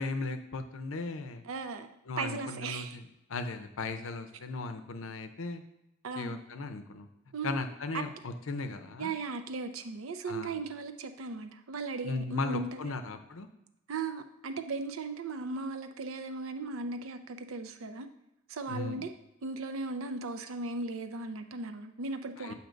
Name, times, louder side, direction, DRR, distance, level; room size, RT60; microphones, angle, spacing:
voice 1, 0.0-1.4 2.1-5.6 6.1-7.1 7.4-9.1 10.3-10.6 12.0-13.5 18.7-19.0 22.4-22.5, left 3 dB, 75° left, 8 dB, 0.6 m, -37 dB
voice 2, 1.5-1.9 2.2-3.0 6.0-6.4 7.3-7.6 7.9-8.0 9.0-13.0 13.9-18.1 18.5-19.1 19.4-22.5, right 3 dB, 80° right, 8 dB, 0.5 m, -37 dB
7.7 x 2.9 x 5.1 m, 0.88 s
head